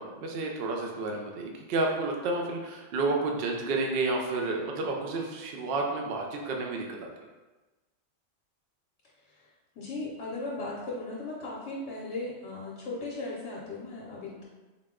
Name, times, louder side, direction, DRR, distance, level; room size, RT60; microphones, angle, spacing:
voice 1, 0.0-7.1, right 3 dB, 60° right, 0 dB, 0.7 m, -30 dB
voice 2, 9.8-14.4, left 2 dB, 65° left, -5 dB, 0.9 m, -37 dB
4.0 x 2.1 x 3.6 m, 1.2 s
omnidirectional pair, 1.3 m